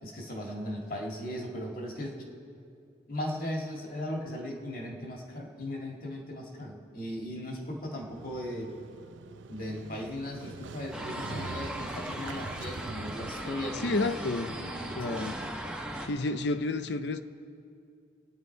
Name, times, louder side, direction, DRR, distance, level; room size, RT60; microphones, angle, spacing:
voice 1, 0.0-2.3 3.1-8.8 9.5-14.1 14.5-15.3, left 1 dB, 50° left, 2.1 m, -37 dB
Motorcycle, 8.0-14.8, right 3 dB, 85° right, 0.6 m, -45 dB
sound 1, 10.9-16.1, right 1 dB, 5° right, 1.2 m, -38 dB
voice 2, 13.8-14.5 15.0-15.3 16.0-17.2, left 2 dB, 65° left, 0.6 m, -30 dB
26.0 x 9.6 x 4.6 m
head